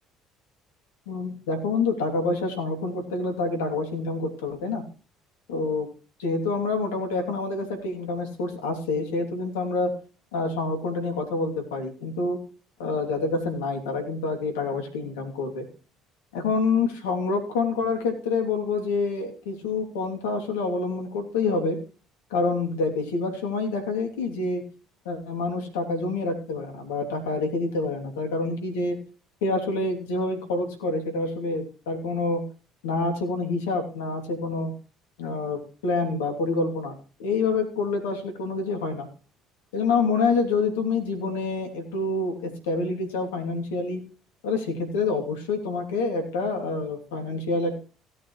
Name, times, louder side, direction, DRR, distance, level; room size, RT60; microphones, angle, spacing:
voice 1, 1.1-4.8 5.5-5.9 6.2-9.9 10.3-12.4 12.8-15.7 16.3-21.8 22.3-24.6 25.0-29.0 29.4-32.4 32.8-34.7 35.2-39.1 39.7-44.0 44.4-47.8, left 3 dB, 75° left, 4 dB, 2.9 m, -27 dB
17.0 x 8.7 x 3.2 m, 0.36 s
figure-of-eight pair, 55°, 0 cm